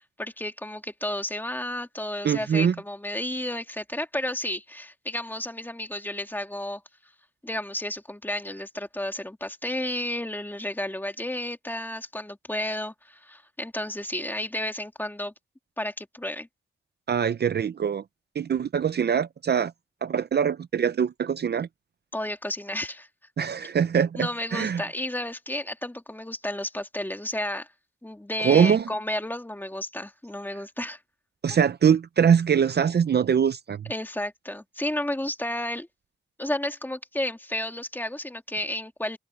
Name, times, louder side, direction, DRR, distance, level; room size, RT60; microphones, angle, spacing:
voice 1, 0.0-6.8 7.4-15.3 15.8-16.5 22.1-23.1 24.2-27.7 28.0-31.0 33.9-35.9 36.4-39.2, left 1 dB, 10° left, 2.6 m, -32 dB
voice 2, 2.2-2.7 17.1-18.0 18.4-19.7 20.0-21.7 23.4-24.8 28.4-28.9 31.4-33.9, right 7 dB, 50° right, 0.5 m, -23 dB
wide cardioid pair, 115°, 21 cm